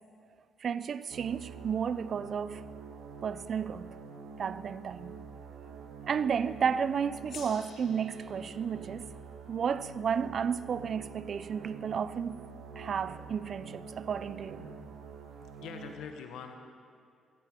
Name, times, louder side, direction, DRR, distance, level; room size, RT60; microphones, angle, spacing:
voice 1, 0.6-2.6 3.2-4.0 4.4-5.2 6.0-9.1 9.5-12.4 12.8-14.7, right 7 dB, 55° right, 0.5 m, -32 dB
sound 1, 1.1-15.9, right 5 dB, 85° right, 1.4 m, -47 dB
Gong, 7.3-12.0, left 6 dB, 60° left, 1.5 m, -54 dB
voice 2, 15.3-16.6, left 7 dB, 85° left, 1.1 m, -44 dB
15.5 x 14.0 x 5.0 m
cardioid pair, 90°, 0 cm